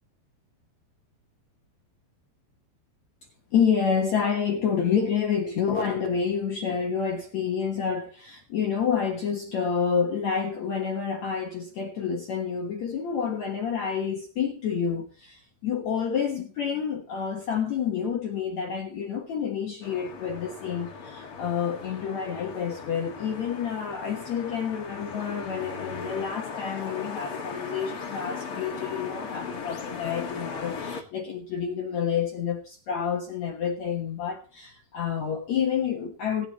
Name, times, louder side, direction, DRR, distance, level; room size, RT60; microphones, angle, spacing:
voice 1, 3.5-36.5, left 7 dB, 70° left, 1.7 m, -28 dB
sound 1, 19.8-31.0, left 5 dB, 50° left, 1.6 m, -38 dB
19.0 x 9.9 x 3.0 m
omnidirectional pair, 5.4 m